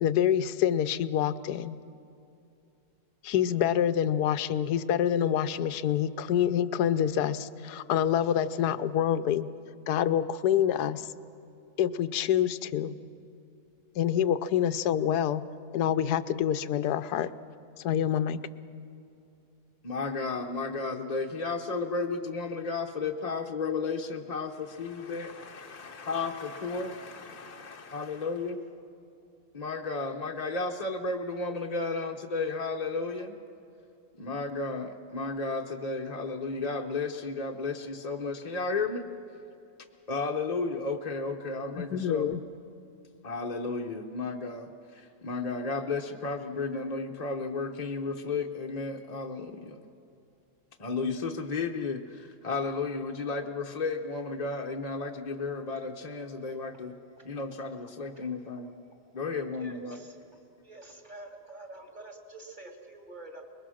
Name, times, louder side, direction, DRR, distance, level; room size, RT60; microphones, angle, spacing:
voice 1, 0.0-1.8 3.2-9.5 9.9-11.1 11.8-13.0 14.0-15.4 15.7-17.3 17.8-18.4 41.7-42.4, left 10 dB, 90° left, 13 dB, 1.2 m, -26 dB
voice 2, 19.8-28.6 29.5-33.3 34.2-39.1 40.1-42.3 43.2-49.8 50.8-57.0 57.2-58.7 59.1-60.0, left 3 dB, 35° left, 2 dB, 0.8 m, -33 dB
voice 3, 59.4-60.1 60.6-63.4, right 2 dB, 30° right, 2 dB, 2.6 m, -47 dB
24.5 x 21.5 x 6.3 m, 2.7 s
omnidirectional pair, 1.7 m